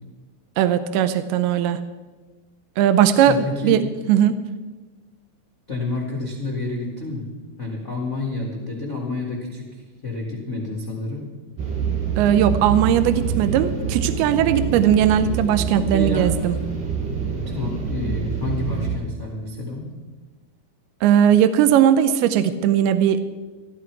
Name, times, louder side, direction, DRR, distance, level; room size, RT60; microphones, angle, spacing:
voice 1, 0.6-1.8 2.8-3.8 4.1-4.4 12.2-16.6 21.0-23.2, right 9 dB, 80° right, 11 dB, 2.5 m, -18 dB
voice 2, 3.1-3.8 5.7-7.3 7.6-11.2 15.9-16.3 17.5-19.9, left 2 dB, 65° left, -3 dB, 0.7 m, -29 dB
sound 1, 11.6-19.0, right 6 dB, 60° right, 3.6 m, -26 dB
14.5 x 13.5 x 4.7 m, 1.3 s
omnidirectional pair, 4.6 m